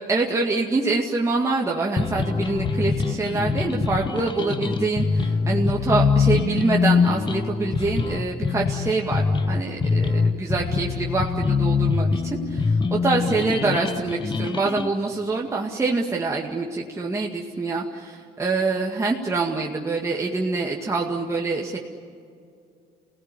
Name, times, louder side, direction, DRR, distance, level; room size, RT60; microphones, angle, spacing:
voice 1, 0.1-21.8, right 3 dB, 15° right, -2 dB, 2.1 m, -25 dB
sound 1, 2.0-14.9, left 5 dB, 30° left, 1.2 m, -23 dB
28.0 x 18.0 x 9.9 m, 2.3 s
cardioid pair, 110°, 17 cm